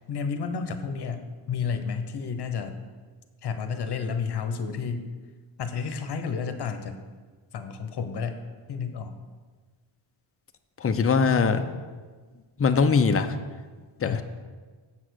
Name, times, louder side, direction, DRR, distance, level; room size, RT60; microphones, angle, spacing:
voice 1, 0.1-2.8 3.4-5.1 5.6-7.0 7.5-8.4 8.7-9.1 14.0-14.2, left 6 dB, 55° left, 8 dB, 1.0 m, -31 dB
voice 2, 10.8-11.6 12.6-13.3 14.0-14.2, left 5 dB, 30° left, 8 dB, 0.6 m, -21 dB
8.2 x 7.4 x 6.4 m, 1.4 s
wide cardioid pair, 135°, 49 cm